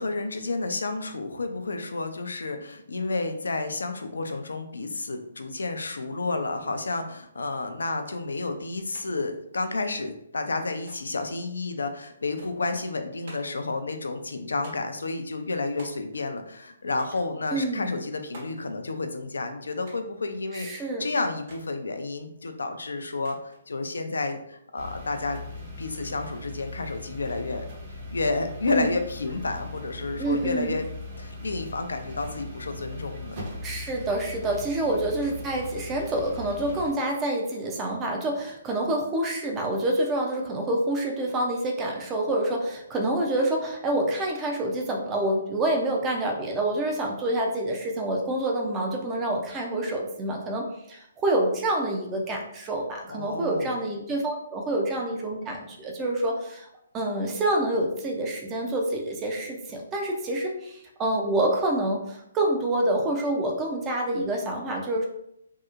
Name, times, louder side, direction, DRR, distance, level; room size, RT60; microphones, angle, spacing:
voice 1, 0.0-25.4 25.8-30.9 31.2-33.4 53.1-53.7, left 3 dB, 75° left, 6 dB, 0.3 m, -31 dB
sound 1, 8.9-9.1 9.3-10.1 10.9-11.3 12.4-12.7 13.3-13.6 14.6-15.0 15.8-16.3 17.0-17.3 18.3-18.7 19.9-20.2 21.5-21.7 23.2-23.6, right 1 dB, 60° right, 1.2 m, -47 dB
voice 2, 17.5-17.9 20.5-21.0 28.7-28.9 30.2-30.7 33.6-56.7 56.9-65.1, right 1 dB, 20° right, 0 dB, 0.4 m, -27 dB
sound 2, 24.8-36.9, left 2 dB, 40° right, 0.8 m, -39 dB
2.7 x 2.0 x 2.4 m, 0.78 s
figure-of-eight pair, 135°, 0 cm